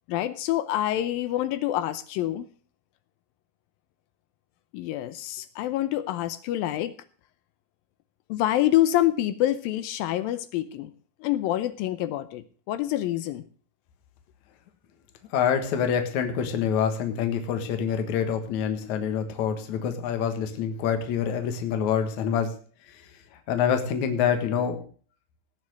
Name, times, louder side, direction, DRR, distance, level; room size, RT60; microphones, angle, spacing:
voice 1, 0.1-2.5 4.7-7.0 8.3-10.9 11.2-13.5, left 13 dB, 80° left, 13 dB, 2.2 m, -26 dB
voice 2, 15.3-22.5 22.9-23.0 23.5-24.8, left 7 dB, 55° left, 6 dB, 2.5 m, -26 dB
17.5 x 6.0 x 6.3 m, 0.41 s
omnidirectional pair, 4.5 m